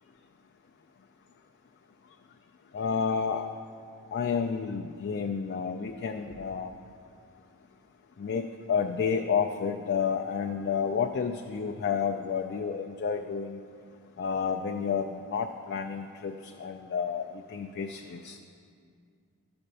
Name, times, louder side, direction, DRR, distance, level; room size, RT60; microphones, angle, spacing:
voice 1, 2.7-3.5 4.1-6.7 8.2-13.6 14.2-18.4, left 6 dB, 50° left, 4 dB, 0.4 m, -30 dB
11.5 x 4.3 x 6.6 m, 2.3 s
head